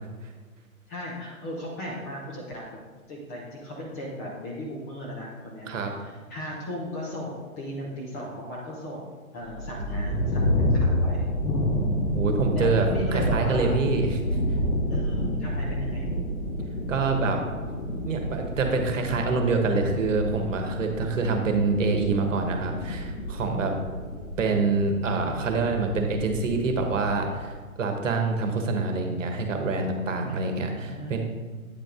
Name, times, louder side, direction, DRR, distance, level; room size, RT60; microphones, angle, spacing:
voice 1, 0.9-2.8 3.1-5.7 6.0-9.1 9.3-11.3 12.5-12.7 12.9-13.7 14.9-16.1 24.2-24.6 30.3-31.2, equal, 10° left, -4 dB, 0.5 m, -36 dB
sound 1, 9.5-27.5, left 1 dB, 80° left, 1.8 m, -29 dB
voice 2, 9.9-10.3 12.1-12.9 13.1-14.2 16.9-17.4 18.0-23.7 24.4-31.2, right 4 dB, 60° right, 4 dB, 1.3 m, -26 dB
8.8 x 5.2 x 3.7 m, 1.4 s
figure-of-eight pair, 125°, 43 cm